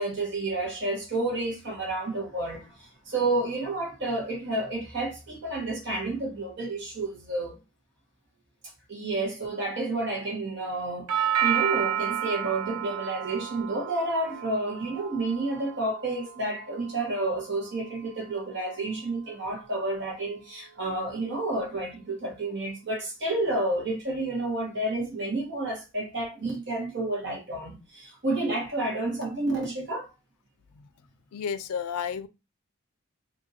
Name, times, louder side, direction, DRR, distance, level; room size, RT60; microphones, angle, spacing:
voice 1, 0.0-2.7 3.1-7.6 8.9-11.1 11.4-30.1, right 2 dB, 50° right, 1.3 m, -30 dB
Doorbell, 11.1-19.1, right 10 dB, 85° right, 0.4 m, -32 dB
voice 2, 31.3-32.3, left 7 dB, 90° left, 0.4 m, -31 dB
2.7 x 2.6 x 4.0 m
head